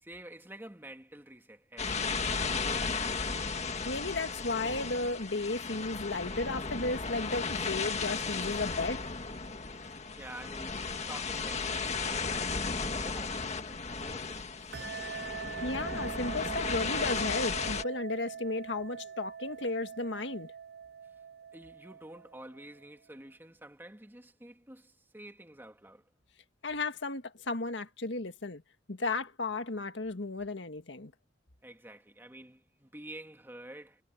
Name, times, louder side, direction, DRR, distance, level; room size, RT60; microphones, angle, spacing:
voice 1, 0.0-3.1 9.8-15.4 21.5-26.1 31.6-34.0, right 1 dB, 10° right, 2.5 m, -50 dB
sound 1, 1.8-17.8, left 4 dB, 40° left, 1.7 m, -35 dB
voice 2, 3.8-9.0 15.6-20.5 26.6-28.6 28.9-31.1, left 3 dB, 80° left, 1.8 m, -34 dB
sound 2, 14.7-22.9, right 7 dB, 60° right, 0.8 m, -43 dB
head